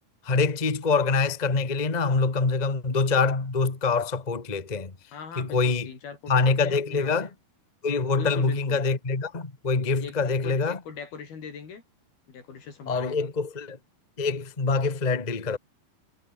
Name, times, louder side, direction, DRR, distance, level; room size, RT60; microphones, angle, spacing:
voice 1, 0.2-4.9 5.4-5.9 6.3-7.3 7.8-10.8 12.9-13.8 14.2-15.6, left 4 dB, 20° left, 1.3 m, -25 dB
voice 2, 5.1-7.4 8.1-8.8 10.0-11.8 12.3-13.3, left 6 dB, 85° left, 6.6 m, -41 dB
omnidirectional pair, 4.3 m